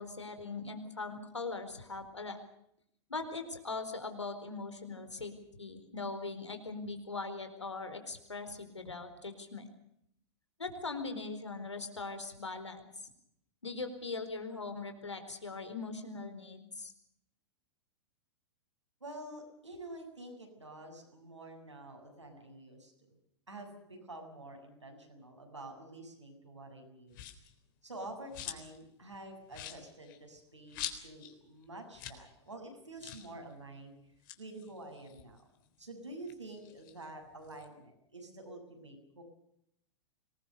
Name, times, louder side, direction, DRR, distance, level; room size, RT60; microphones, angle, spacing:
voice 1, 0.0-2.4 3.1-5.3 5.6-9.7 10.6-12.8 13.6-16.9, left 3 dB, 80° left, 7 dB, 4.4 m, -40 dB
voice 2, 19.0-23.2 23.5-27.2 27.8-33.9 34.4-35.4 35.8-39.2, right 2 dB, 80° right, 2 dB, 7.5 m, -48 dB
sound 1, 27.1-27.5 28.0-28.8 29.1-29.2 29.5-31.4 31.6-31.7 31.9-32.3 32.5-32.6 33.0-33.3 34.1-35.8 36.2-37.7, left 11 dB, 45° left, 3.8 m, -45 dB
25.5 x 20.5 x 6.7 m, 0.75 s
figure-of-eight pair, 100°, 15 cm